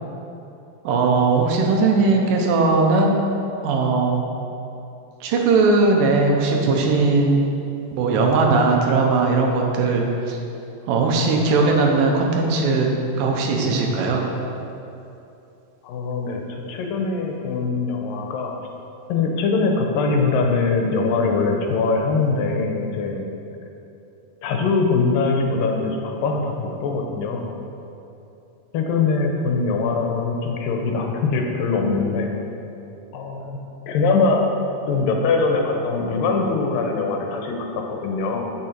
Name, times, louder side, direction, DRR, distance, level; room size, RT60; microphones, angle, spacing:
voice 1, 0.8-3.2 3.6-4.2 5.2-7.4 7.9-10.4 10.9-12.9 13.2-14.2, right 3 dB, 85° right, 1 dB, 2.6 m, -19 dB
voice 2, 15.8-18.5 19.1-23.3 24.4-27.5 28.7-32.3 33.1-33.6 33.9-34.4 34.9-38.5, left 4 dB, 80° left, 2 dB, 2.6 m, -22 dB
10.5 x 6.2 x 4.5 m, 2.8 s
omnidirectional pair, 3.9 m